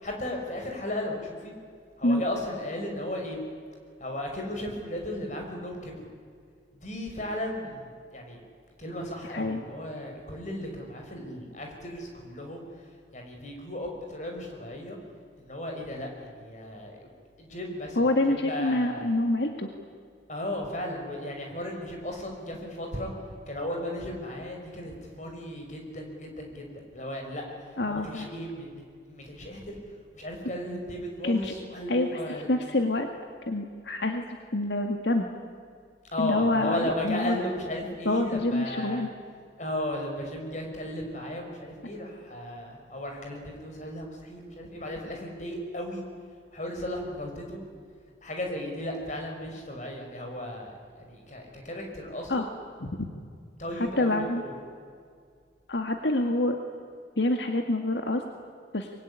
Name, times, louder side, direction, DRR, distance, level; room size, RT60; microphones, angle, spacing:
voice 1, 0.0-1.5 2.0-3.4 4.0-6.1 6.8-8.4 8.8-12.6 13.1-15.0 15.4-17.0 17.4-18.1 18.4-19.1 20.3-23.1 23.5-27.4 27.8-29.8 30.1-32.5 36.1-39.1 39.6-46.0 46.5-47.6 48.2-52.5 53.6-54.5, left 1 dB, 40° left, 2 dB, 5.6 m, -35 dB
voice 2, 9.3-9.6 18.0-19.7 27.8-28.3 31.2-31.5 31.9-32.2 32.5-33.1 33.5-34.3 34.5-35.3 36.2-37.4 38.1-39.1 52.3-52.5 52.8-53.1 53.8-54.4 55.7-56.6 57.2-58.2 58.7-58.9, left 2 dB, 75° left, 4 dB, 1.9 m, -26 dB
24.0 x 23.0 x 10.0 m, 2.1 s
head